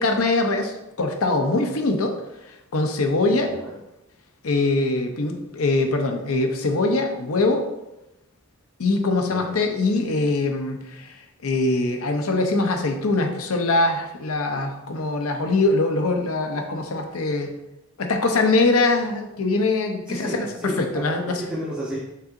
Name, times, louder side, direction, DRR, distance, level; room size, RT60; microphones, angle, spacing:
voice 1, 0.0-2.1 2.7-3.5 4.4-7.6 8.8-11.1 11.4-17.5 18.0-21.4, left 2 dB, 80° left, 4 dB, 0.7 m, -22 dB
voice 2, 3.5-3.8 9.3-9.6 20.1-22.0, equal, 5° right, -9 dB, 0.7 m, -32 dB
5.6 x 3.7 x 2.5 m, 0.90 s
head